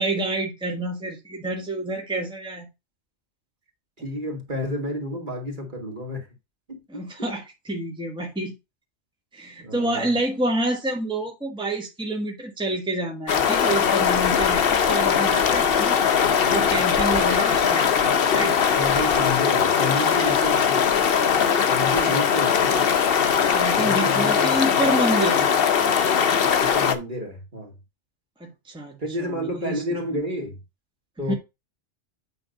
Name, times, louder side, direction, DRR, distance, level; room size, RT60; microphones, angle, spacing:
voice 1, 0.0-2.7 6.9-8.5 9.3-16.0 16.5-18.6 22.1-22.2 23.5-25.5 28.4-29.8 31.3-31.4, right 2 dB, 5° right, 1.4 m, -28 dB
voice 2, 4.0-6.3 6.7-7.3 9.6-10.1 16.4-16.6 18.7-20.8 21.6-22.9 23.7-24.6 26.6-27.7 29.0-30.6 31.2-31.3, left 1 dB, 45° right, 2.3 m, -30 dB
sound 1, 13.3-27.0, left 7 dB, 55° left, 1.0 m, -20 dB
8.9 x 3.6 x 5.1 m
omnidirectional pair, 1.2 m